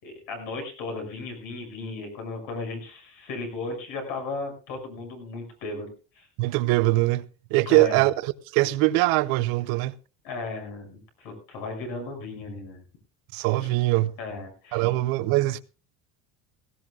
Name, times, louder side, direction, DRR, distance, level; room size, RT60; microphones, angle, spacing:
voice 1, 0.0-6.3 7.7-8.0 10.2-12.8 13.6-13.7 14.2-14.9, left 3 dB, 80° left, 6.7 m, -35 dB
voice 2, 6.4-7.2 7.5-9.9 13.3-14.2 14.7-15.6, right 18 dB, 80° right, 0.9 m, -22 dB
18.0 x 16.5 x 2.5 m
cardioid pair, 165°, 34 cm